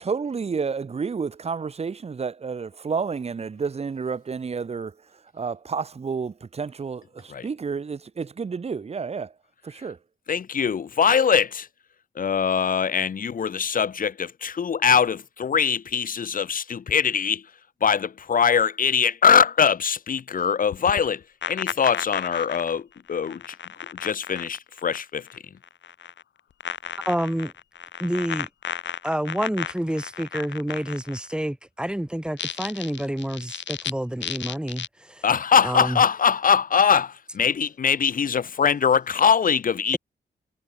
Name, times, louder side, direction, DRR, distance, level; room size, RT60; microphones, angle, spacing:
voice 1, 0.0-4.9 5.3-9.3 9.6-10.0, right 5 dB, 35° right, 0.9 m, -30 dB
voice 2, 10.3-11.7 12.2-17.4 17.8-21.2 21.5-23.5 24.0-25.4 35.2-40.0, left 7 dB, 45° left, 1.0 m, -22 dB
sound 1, 20.7-25.4 25.6-26.2 26.6-31.3 32.3-33.9 34.2-34.9, left 9 dB, 70° left, 1.2 m, -34 dB
voice 3, 27.0-27.5 28.0-28.5 29.0-35.2 35.6-36.0, right 1 dB, 5° right, 1.4 m, -28 dB
wide cardioid pair, 120°, 19 cm